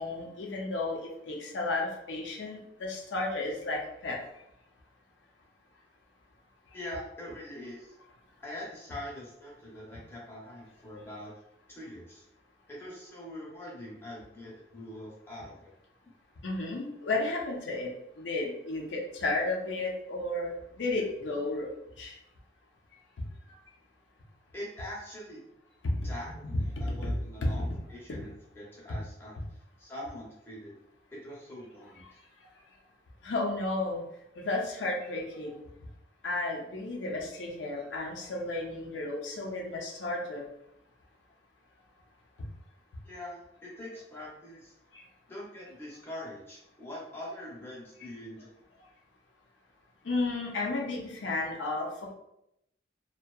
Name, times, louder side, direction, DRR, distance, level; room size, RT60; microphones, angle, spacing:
voice 1, 0.0-4.2 16.4-17.9 18.2-22.1 25.8-26.0 26.8-27.1 27.4-27.6 28.1-28.2 33.2-34.0 34.4-35.6 36.2-40.4 44.9-45.0 50.0-51.9, left 2 dB, 85° left, 0 dB, 0.5 m, -33 dB
voice 2, 6.7-7.9 8.4-11.3 11.7-12.2 12.7-15.7 24.5-25.4 26.0-30.7 31.1-32.0 43.0-44.7 45.3-48.5, left 1 dB, 10° left, -6 dB, 0.6 m, -43 dB
2.6 x 2.2 x 2.2 m, 0.81 s
head